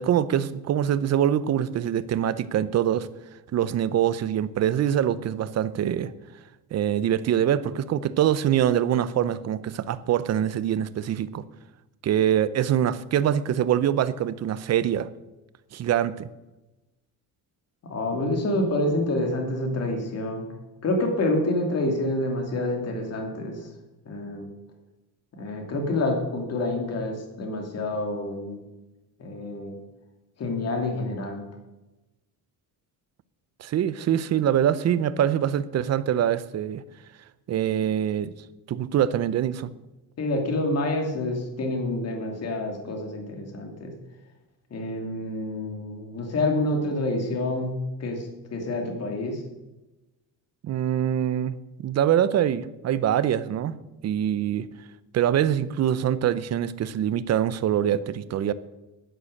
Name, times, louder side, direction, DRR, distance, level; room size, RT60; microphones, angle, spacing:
voice 1, 0.0-3.1 3.5-6.1 6.7-11.4 12.0-15.1 15.7-16.3 33.6-36.8 37.5-38.3 38.7-39.7 50.6-51.6 51.8-53.8 54.0-54.7 55.1-58.5, right 10 dB, 45° right, 16 dB, 0.7 m, -24 dB
voice 2, 17.9-20.4 20.8-23.7 24.1-24.5 25.4-28.6 29.2-29.7 30.4-31.4 40.2-43.9 44.7-49.4, left 2 dB, 40° left, 3 dB, 2.6 m, -28 dB
11.0 x 10.5 x 6.5 m, 1.0 s
cardioid pair, 155°, 38 cm